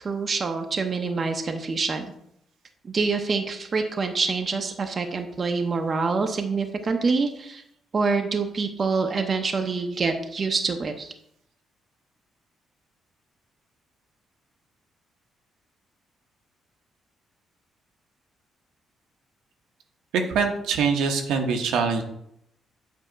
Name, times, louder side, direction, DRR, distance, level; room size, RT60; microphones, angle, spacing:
voice 1, 0.0-2.1 2.8-7.6 7.9-11.1, right 4 dB, 40° right, 5 dB, 0.7 m, -26 dB
voice 2, 20.3-22.0, right 5 dB, 85° right, 3 dB, 0.8 m, -24 dB
7.6 x 2.8 x 5.0 m, 0.74 s
cardioid pair, 90°, 0 cm